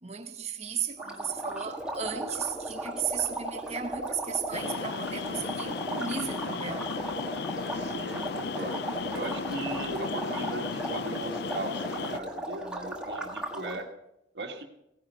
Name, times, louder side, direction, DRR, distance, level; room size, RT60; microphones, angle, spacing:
voice 1, 0.0-6.9, right 7 dB, 35° right, 1.1 m, -35 dB
sound 1, 1.0-13.8, right 1 dB, 5° right, 1.7 m, -36 dB
sound 2, 4.5-12.2, left 5 dB, 60° left, 0.4 m, -35 dB
voice 2, 7.7-8.8 9.1-13.9 14.3-14.6, right 2 dB, 60° right, 1.8 m, -38 dB
17.0 x 10.5 x 5.6 m
head